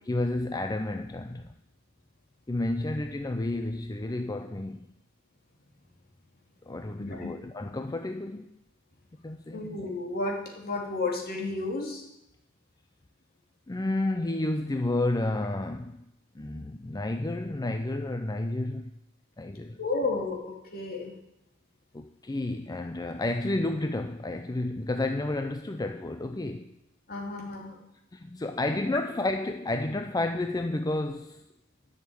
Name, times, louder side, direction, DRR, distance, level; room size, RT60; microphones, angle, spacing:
voice 1, 0.1-1.5 2.5-4.9 6.7-8.5 9.2-9.7 13.7-16.0 16.3-18.9 19.4-19.8 21.9-26.8 28.1-31.4, left 2 dB, 20° left, 0.5 m, -31 dB
voice 2, 7.0-7.3 9.5-12.0 19.8-21.1 27.1-27.9, left 3 dB, 50° left, 2.8 m, -32 dB
11.5 x 6.6 x 9.1 m
head